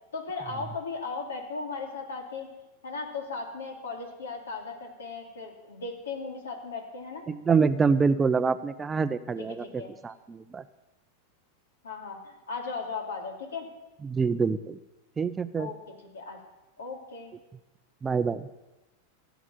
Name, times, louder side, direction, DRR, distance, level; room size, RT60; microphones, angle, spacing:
voice 1, 0.1-2.5 2.8-7.2 9.6-9.9 11.8-13.7 15.6-15.7 16.1-16.4 16.8-17.3, left 4 dB, 75° left, 2 dB, 3.0 m, -37 dB
voice 2, 7.3-10.6 14.0-14.8 15.2-15.7 18.0-18.5, right 5 dB, 20° right, 13 dB, 0.7 m, -26 dB
15.5 x 7.1 x 9.7 m, 1.1 s
figure-of-eight pair, 90°, 0 cm